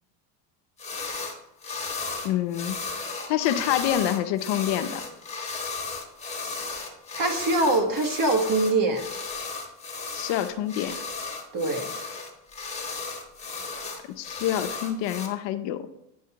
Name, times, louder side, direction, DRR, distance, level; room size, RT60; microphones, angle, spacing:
sound 1, 0.8-1.4 1.6-15.3, left 4 dB, 15° left, 1.1 m, -35 dB
voice 1, 2.2-2.8 3.3-5.0 10.1-11.0 14.2-15.9, left 11 dB, 60° left, 9 dB, 0.7 m, -27 dB
voice 2, 6.4-6.7 7.1-9.1 11.5-11.9, right 2 dB, 40° right, 4 dB, 1.3 m, -24 dB
9.3 x 5.6 x 2.9 m, 0.83 s
cardioid pair, 125°, 48 cm